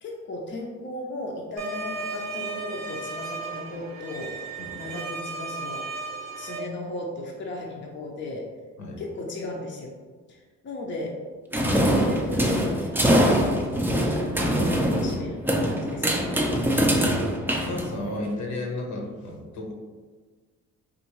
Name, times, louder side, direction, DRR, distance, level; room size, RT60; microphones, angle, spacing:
voice 1, 0.0-4.4 4.7-5.9 6.4-8.5 9.0-10.0 10.3-11.2 11.7-13.4 14.0-16.9, left 2 dB, 40° left, -1 dB, 0.5 m, -36 dB
sound 1, 1.6-6.6, right 3 dB, 90° right, 0.8 m, -35 dB
sound 2, 11.5-18.3, equal, 5° right, 0.4 m, -23 dB
voice 2, 17.7-19.7, left 2 dB, 70° left, 0 dB, 0.8 m, -33 dB
3.6 x 2.5 x 3.0 m, 1.4 s
cardioid pair, 90°, 30 cm